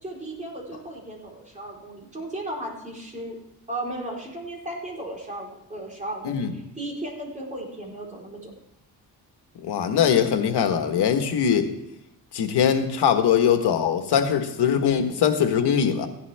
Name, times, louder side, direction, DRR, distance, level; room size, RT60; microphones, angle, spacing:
voice 1, 0.0-3.4 3.7-8.5, right 1 dB, 20° right, -2 dB, 4.1 m, -35 dB
voice 2, 9.6-11.7 12.3-16.1, left 8 dB, 80° left, 7 dB, 1.5 m, -21 dB
15.5 x 11.0 x 3.5 m, 0.87 s
cardioid pair, 100°, 40 cm